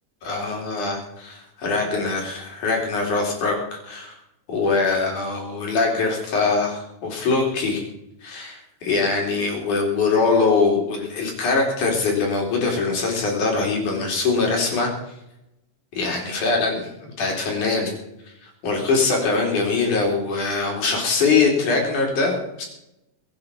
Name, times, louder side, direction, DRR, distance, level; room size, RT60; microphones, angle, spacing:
voice 1, 0.2-4.2 4.5-7.8 8.2-14.9 15.9-17.9 18.4-22.7, left 4 dB, 60° left, 0 dB, 5.2 m, -22 dB
22.0 x 9.0 x 5.6 m, 0.85 s
omnidirectional pair, 3.9 m